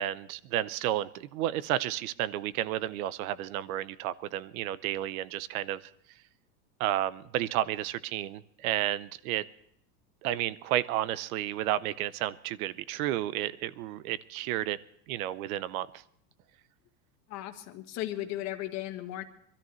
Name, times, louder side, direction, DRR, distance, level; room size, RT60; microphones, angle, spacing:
voice 1, 0.0-5.8 6.8-9.4 10.2-14.8 15.1-15.9, right 13 dB, 60° right, 18 dB, 0.8 m, -31 dB
voice 2, 17.3-19.2, left 14 dB, 35° left, 5 dB, 1.5 m, -36 dB
25.0 x 13.5 x 3.1 m, 0.66 s
supercardioid pair, 165°, 48 cm